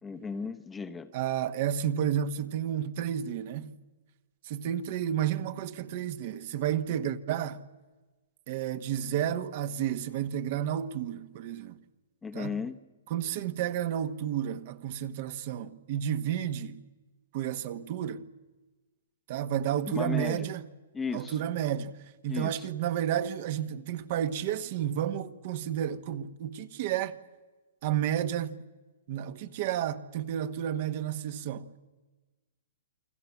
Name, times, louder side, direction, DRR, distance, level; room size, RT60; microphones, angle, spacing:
voice 1, 0.0-1.1 12.2-12.8 19.9-20.5 20.9-21.3 22.3-22.7, left 5 dB, 10° left, 0.9 m, -35 dB
voice 2, 1.1-3.7 4.4-7.6 8.5-11.8 12.3-12.6 13.1-16.8 17.3-18.3 19.3-20.6 21.1-22.0 22.2-27.2 27.8-28.6 29.1-31.7, right 10 dB, 45° right, 1.3 m, -31 dB
29.0 x 23.0 x 7.3 m
hypercardioid pair, 150°, 0 cm